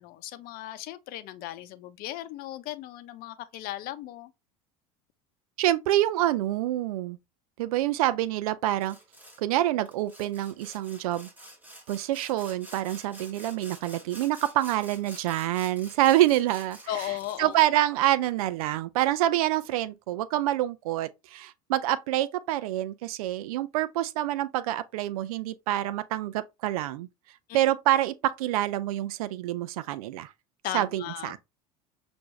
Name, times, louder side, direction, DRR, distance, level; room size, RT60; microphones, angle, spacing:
voice 1, 0.0-4.3 16.9-17.5 27.5-27.6 30.6-31.4, left 14 dB, 55° left, 0.6 m, -36 dB
voice 2, 5.6-7.2 7.6-9.0 9.4-11.3 11.9-17.1 17.4-27.1 27.5-30.3 30.7-31.4, right 14 dB, 75° right, 0.4 m, -27 dB
Sawing, 8.8-9.4 9.9-17.6, right 1 dB, 10° right, 1.6 m, -48 dB
5.9 x 2.6 x 3.2 m
hypercardioid pair, 80°, 19 cm